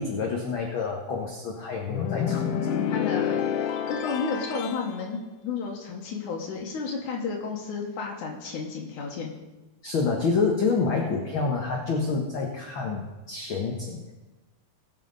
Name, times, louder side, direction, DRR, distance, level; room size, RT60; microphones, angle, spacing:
voice 1, 0.0-2.8 9.8-14.1, left 4 dB, 55° left, 1 dB, 1.6 m, -28 dB
sound 1, 1.9-4.9, left 8 dB, 70° left, 1.4 m, -28 dB
voice 2, 2.9-3.4 3.9-5.2 5.4-9.3, left 5 dB, 90° left, -1 dB, 2.8 m, -32 dB
21.5 x 7.6 x 4.0 m, 1.1 s
omnidirectional pair, 3.4 m